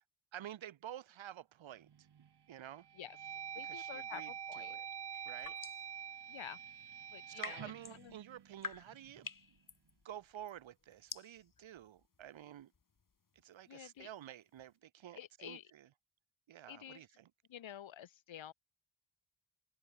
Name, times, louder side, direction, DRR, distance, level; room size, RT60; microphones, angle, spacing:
voice 1, 0.3-2.1 2.5-2.9 3.6-4.9 5.2-5.6 7.3-9.3 10.0-12.7 13.4-15.9 16.5-17.3, right 11 dB, 80° right, 3.9 m, -51 dB
sound 1, 1.9-2.3 2.8-9.0, right 8 dB, 60° right, 2.1 m, -47 dB
voice 2, 3.5-4.8 6.3-6.6 7.1-7.7 8.0-8.1 13.7-14.1 15.2-15.7 16.7-17.0 17.5-18.5, left 10 dB, 80° left, 6.6 m, -50 dB
sound 2, 5.1-5.9 7.0-14.7, left 5 dB, 45° left, 4.1 m, -50 dB
supercardioid pair, 40°, 46 cm